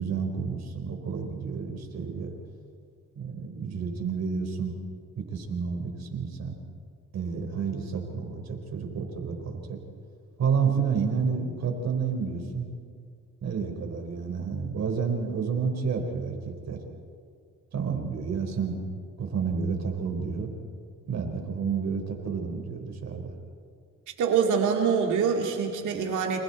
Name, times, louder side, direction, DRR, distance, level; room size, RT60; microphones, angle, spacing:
voice 1, 0.0-2.3 3.2-4.7 5.2-6.6 7.1-9.8 10.4-12.7 13.4-16.8 17.7-18.8 19.2-20.5 21.1-23.3, right 5 dB, 60° right, 4 dB, 4.3 m, -30 dB
voice 2, 24.2-26.4, right 6 dB, 80° right, 2 dB, 2.3 m, -25 dB
29.0 x 26.5 x 4.3 m, 2.2 s
cardioid pair, 90°, 30 cm